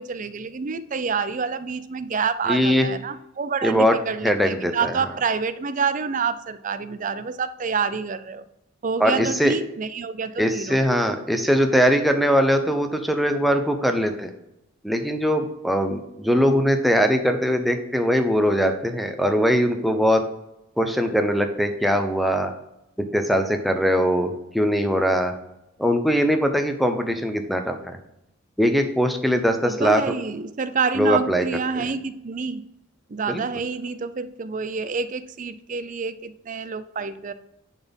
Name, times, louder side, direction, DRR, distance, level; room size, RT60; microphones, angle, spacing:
voice 1, 0.0-8.4 8.8-10.8 29.6-32.6 33.1-37.3, right 5 dB, 40° right, 13 dB, 0.5 m, -27 dB
voice 2, 2.5-2.9 3.6-4.0 4.2-5.0 9.0-9.6 10.4-14.3 14.8-20.2 20.8-22.5 23.1-25.3 25.8-28.0 28.6-30.1 31.0-31.5 31.7-31.8 33.3-33.4, equal, ahead, 5 dB, 0.7 m, -21 dB
10.5 x 4.2 x 5.3 m, 0.88 s
head